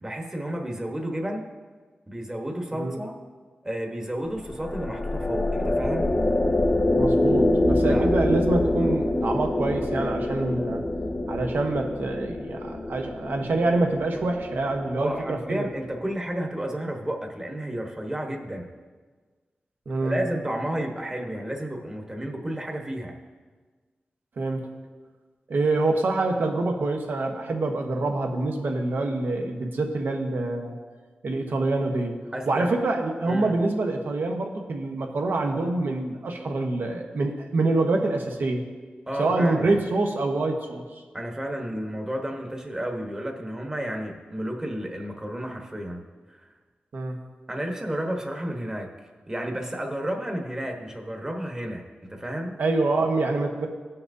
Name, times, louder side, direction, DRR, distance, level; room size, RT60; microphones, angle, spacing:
voice 1, 0.0-1.5 2.1-3.1 3.6-6.1 7.9-8.1 15.0-18.7 20.0-23.1 32.3-32.7 33.2-33.5 39.1-39.8 41.1-46.0 46.3-46.5 47.5-48.9 49.3-51.8 52.1-52.6, right 1 dB, 20° right, 2 dB, 1.1 m, -31 dB
sound 1, 4.3-15.7, left 1 dB, 30° left, 0.6 m, -26 dB
voice 2, 6.9-10.8 11.3-15.6 19.9-20.2 24.4-24.7 25.5-30.8 31.2-32.2 32.5-38.6 39.2-40.8 46.9-47.2 52.6-53.7, right 2 dB, 75° right, 3 dB, 1.0 m, -26 dB
17.0 x 5.8 x 2.7 m, 1.4 s
wide cardioid pair, 100°, 3 cm